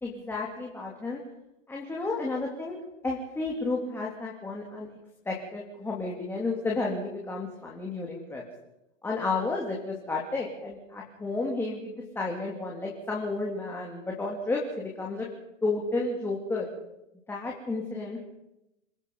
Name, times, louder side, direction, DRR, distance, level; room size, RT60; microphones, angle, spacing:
voice 1, 0.0-1.2 1.7-2.8 3.0-4.9 5.3-8.4 9.0-15.3 15.6-16.7 17.3-18.2, left 3 dB, 5° left, -2 dB, 2.6 m, -32 dB
27.5 x 18.0 x 5.3 m, 0.91 s
hypercardioid pair, 150°, 38 cm